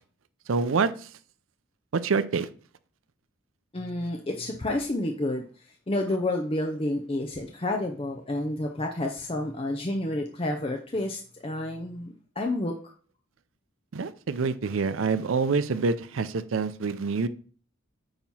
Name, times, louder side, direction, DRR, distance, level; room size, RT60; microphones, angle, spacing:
voice 1, 0.5-0.9 1.9-2.5 13.9-17.3, right 4 dB, 80° right, 0.5 m, -26 dB
voice 2, 3.7-5.4 5.9-12.7, left 1 dB, 25° left, 0.6 m, -30 dB
8.8 x 3.0 x 5.5 m
head